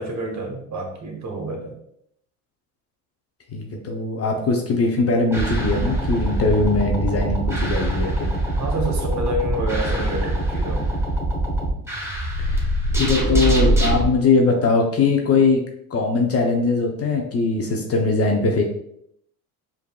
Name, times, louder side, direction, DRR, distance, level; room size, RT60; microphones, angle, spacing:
voice 1, 0.0-1.8 8.6-10.9, right 1 dB, 40° right, 2 dB, 1.1 m, -28 dB
voice 2, 3.5-8.3 12.4-15.6 15.9-18.6, left 3 dB, 30° left, 2 dB, 0.7 m, -21 dB
sound 1, 5.3-14.0, right 1 dB, 5° right, 1.1 m, -23 dB
4.9 x 2.6 x 2.3 m, 0.72 s
hypercardioid pair, 75°, 45 cm